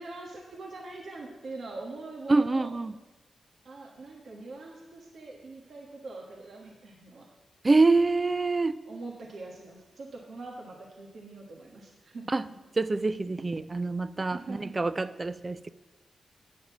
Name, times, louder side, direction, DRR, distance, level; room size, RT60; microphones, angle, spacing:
voice 1, 0.0-2.7 3.6-7.3 8.9-12.5 13.3-13.4 14.3-14.6, right 3 dB, 70° right, -1 dB, 1.4 m, -43 dB
voice 2, 2.3-2.9 7.6-8.8 12.3-12.4 12.8-15.7, right 3 dB, 30° right, 14 dB, 0.4 m, -25 dB
8.7 x 6.4 x 7.1 m, 1.1 s
cardioid pair, 70°, 0 cm